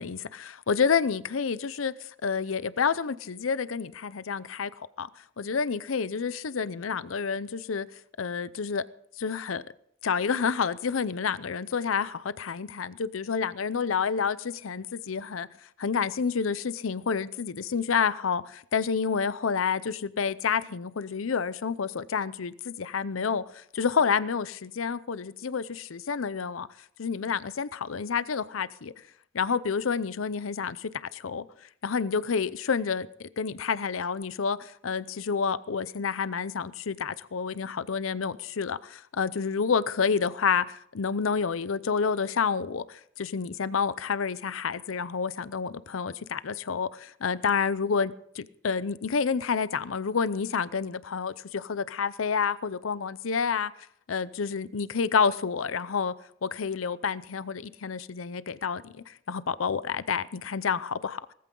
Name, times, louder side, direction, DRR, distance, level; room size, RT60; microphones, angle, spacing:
voice 1, 0.0-5.1 5.4-7.9 8.2-8.8 9.2-9.6 10.0-15.5 15.8-26.7 27.0-28.9 29.3-31.4 31.8-53.7 54.1-56.1 56.4-61.2, left 6 dB, 85° left, 0.6 m, -29 dB
19.0 x 14.0 x 3.8 m
head